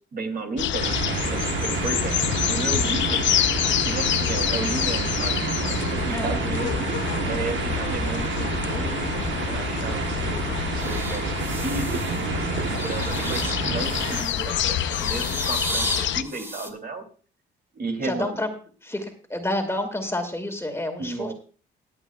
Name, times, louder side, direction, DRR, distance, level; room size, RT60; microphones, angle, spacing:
voice 1, 0.0-3.2 3.6-9.1 9.5-17.0 17.7-18.4 21.0-21.3, right 3 dB, 50° right, 5 dB, 2.8 m, -34 dB
sound 1, 0.6-16.2, left 11 dB, 70° left, 0.7 m, -27 dB
sound 2, 0.8-14.2, right 7 dB, 70° right, 1.1 m, -29 dB
voice 2, 4.0-4.3 6.1-6.4 18.0-18.5 18.8-21.3, left 1 dB, 15° left, 5 dB, 2.0 m, -29 dB
sound 3, 10.8-12.2 12.6-14.5 14.8-16.7, right 1 dB, 10° right, 2.2 m, -34 dB
21.0 x 8.0 x 2.3 m, 0.38 s
cardioid pair, 90°, 20 cm